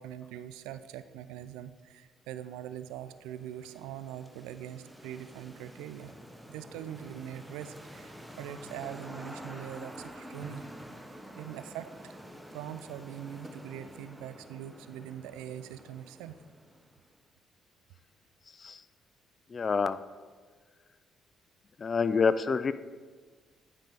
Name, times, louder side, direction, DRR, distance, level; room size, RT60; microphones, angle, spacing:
voice 1, 0.0-6.1 6.5-10.7 11.3-12.2 12.5-16.4, right 11 dB, 85° right, 12 dB, 0.4 m, -42 dB
sound 1, 2.6-17.1, equal, 5° right, 0.8 m, -48 dB
voice 2, 19.5-20.0 21.8-22.7, left 5 dB, 45° left, 14 dB, 0.4 m, -27 dB
10.0 x 5.3 x 3.4 m, 1.5 s
hypercardioid pair, 55°, 0 cm